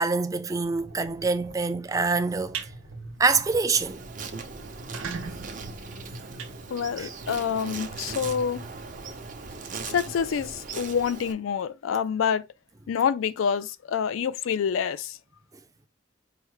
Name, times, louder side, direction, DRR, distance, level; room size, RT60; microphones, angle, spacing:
voice 1, 0.0-2.7 3.2-4.0 7.0-7.1, right 4 dB, 15° right, 0.4 m, -25 dB
sound 1, 0.6-10.7, right 1 dB, 65° right, 1.0 m, -46 dB
sound 2, 2.5-2.7 3.2-3.4 3.8-3.9 4.1-4.2 4.7-7.3, right 6 dB, 85° right, 0.7 m, -38 dB
Insect, 3.7-11.3, right 4 dB, 40° right, 0.7 m, -39 dB
voice 2, 6.7-8.6 9.9-12.5 12.9-15.2, left 7 dB, 80° left, 0.4 m, -27 dB
4.8 x 2.1 x 4.7 m
head